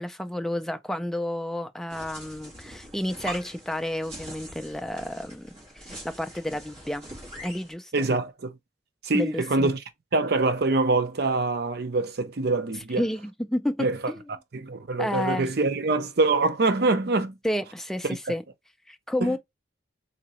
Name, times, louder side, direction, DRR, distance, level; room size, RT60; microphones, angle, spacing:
voice 1, 0.0-7.1 7.4-8.1 9.1-9.7 13.0-14.2 15.0-15.5 17.4-18.4 18.9-19.4, left 1 dB, 5° left, 0.3 m, -31 dB
sound 1, 1.9-7.7, equal, 30° right, 1.9 m, -43 dB
voice 2, 7.9-8.5 9.0-9.8 10.1-13.0 13.8-14.0 14.5-17.4 18.0-18.2 19.2-19.4, right 3 dB, 55° right, 0.6 m, -24 dB
3.8 x 2.8 x 3.0 m
head